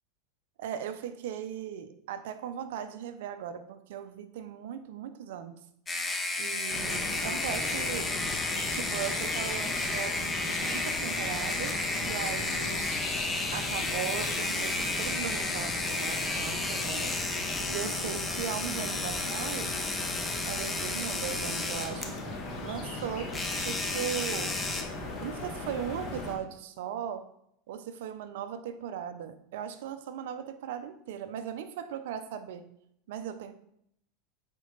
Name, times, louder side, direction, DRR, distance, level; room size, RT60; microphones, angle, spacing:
voice 1, 0.6-5.6 6.4-8.1 8.7-12.9 13.5-17.2 17.7-19.7 20.5-22.2 22.6-24.6 25.1-27.3 27.7-32.7 33.1-33.5, right 9 dB, 75° right, 10 dB, 0.8 m, -38 dB
sound 1, 5.9-22.2 23.3-24.8, left 2 dB, 15° left, 1.0 m, -32 dB
sound 2, 6.7-26.3, left 2 dB, 40° left, 2.0 m, -38 dB
8.2 x 4.7 x 4.1 m, 0.72 s
supercardioid pair, 115°, 0 cm